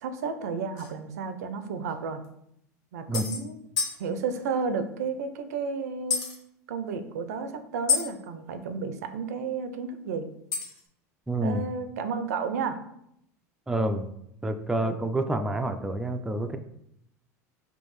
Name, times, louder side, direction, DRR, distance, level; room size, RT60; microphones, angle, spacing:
voice 1, 0.0-2.2 2.9-3.5 4.0-6.2 6.7-10.3 11.4-12.8 14.8-15.0, right 5 dB, 85° right, 9 dB, 0.4 m, -32 dB
sound 1, 0.8-0.9 1.9-2.0 2.2-2.3 3.1-3.4 3.8-4.0 6.1-6.4 7.9-8.1 10.5-10.8, left 5 dB, 50° left, 1.0 m, -27 dB
voice 2, 11.3-11.6 13.7-14.1 14.4-16.6, right 1 dB, 5° right, 6 dB, 0.3 m, -28 dB
4.5 x 2.6 x 3.0 m, 0.76 s
hypercardioid pair, 95°, 9 cm